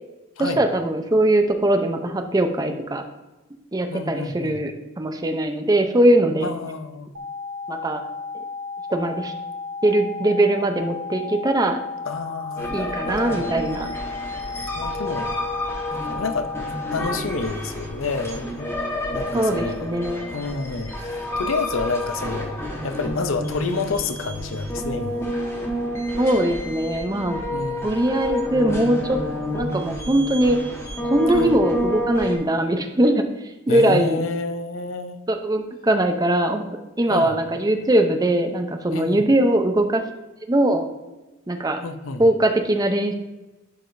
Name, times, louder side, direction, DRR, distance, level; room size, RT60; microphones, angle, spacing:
voice 1, 0.4-3.0 3.7-4.7 5.0-6.5 7.7-8.0 8.9-9.3 9.8-11.8 12.7-13.9 19.3-20.3 26.2-27.4 27.8-29.2 29.5-30.6 31.0-33.2 33.7-34.2 35.3-36.6 37.0-40.0 40.5-40.9 41.5-41.8 42.2-43.1, right 1 dB, 20° right, 6 dB, 0.6 m, -21 dB
voice 2, 3.9-4.6 6.4-7.1 12.1-13.5 14.7-15.3 16.1-16.5 16.9-18.7 19.1-19.9 20.3-22.6 22.8-25.2 27.5-28.0 31.3-31.6 33.7-35.2 37.1-37.3 38.9-39.2 41.8-42.2, left 4 dB, 70° left, 9 dB, 0.6 m, -29 dB
sound 1, 7.1-17.2, left 4 dB, 70° right, 0.9 m, -33 dB
sound 2, 12.6-32.4, equal, 15° left, 1.2 m, -29 dB
11.5 x 4.8 x 2.6 m, 1.1 s
head